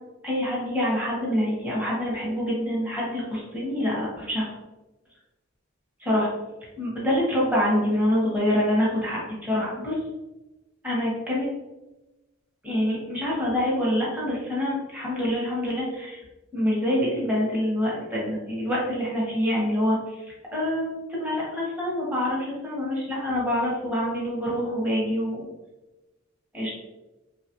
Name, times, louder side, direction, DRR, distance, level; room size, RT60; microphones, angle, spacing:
voice 1, 0.2-4.5 6.0-6.3 6.8-10.0 10.8-11.5 12.6-16.2 16.5-20.2 20.5-25.4 26.5-26.8, equal, 10° right, -6 dB, 0.9 m, -26 dB
2.8 x 2.4 x 2.8 m, 1.1 s
head